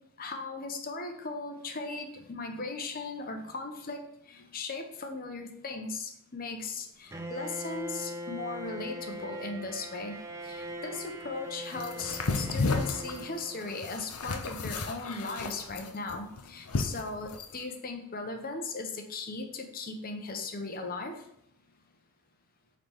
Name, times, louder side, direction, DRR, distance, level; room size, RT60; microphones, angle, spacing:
voice 1, 0.2-10.2 10.5-21.2, left 3 dB, 40° left, 5 dB, 0.8 m, -38 dB
Bowed string instrument, 7.1-14.0, equal, 15° right, 0.4 m, -41 dB
sound 1, 11.8-17.6, left 3 dB, 85° left, 0.7 m, -33 dB
7.8 x 4.0 x 3.5 m, 0.75 s
head